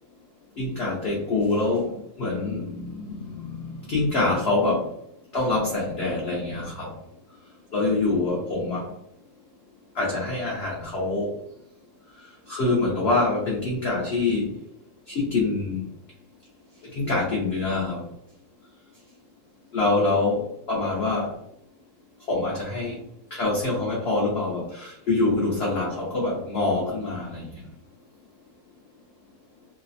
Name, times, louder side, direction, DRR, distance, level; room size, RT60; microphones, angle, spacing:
voice 1, 0.6-4.9 5.3-7.0 7.7-8.9 9.9-11.4 12.5-14.6 15.1-15.8 16.9-18.1 19.7-21.4 22.3-23.0 23.3-27.6, left 2 dB, 60° left, -4 dB, 0.6 m, -25 dB
3.2 x 2.0 x 2.5 m, 0.73 s
omnidirectional pair, 1.7 m